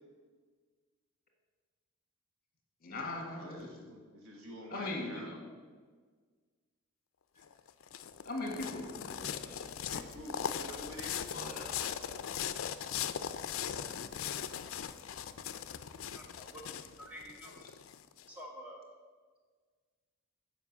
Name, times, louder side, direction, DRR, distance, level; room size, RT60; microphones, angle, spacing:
voice 1, 2.8-3.7 4.7-5.4 8.2-9.7 11.3-11.8, left 2 dB, 45° left, 1 dB, 1.7 m, -40 dB
voice 2, 3.3-5.3 9.9-11.2, right 1 dB, 85° right, 0 dB, 1.7 m, -47 dB
sound 1, 7.4-18.2, left 8 dB, 70° left, 0.4 m, -39 dB
voice 3, 16.1-17.6 18.3-18.8, equal, 5° right, -2 dB, 1.4 m, -49 dB
7.2 x 5.2 x 7.2 m, 1.5 s
head